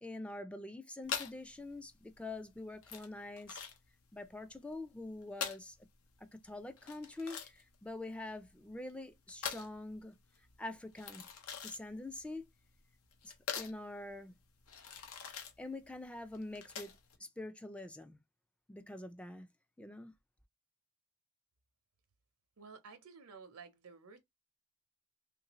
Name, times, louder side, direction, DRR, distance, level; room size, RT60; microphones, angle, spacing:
voice 1, 0.0-3.6 4.1-5.8 6.2-10.2 10.6-11.3 11.6-12.4 13.2-14.3 15.6-16.9 17.2-18.2 18.7-19.5 19.8-20.1, left 2 dB, 5° left, 0.3 m, -45 dB
sound 1, 1.0-17.2, left 7 dB, 90° left, 0.8 m, -45 dB
voice 2, 22.6-24.2, right 5 dB, 80° right, 0.7 m, -53 dB
3.1 x 2.5 x 2.9 m
head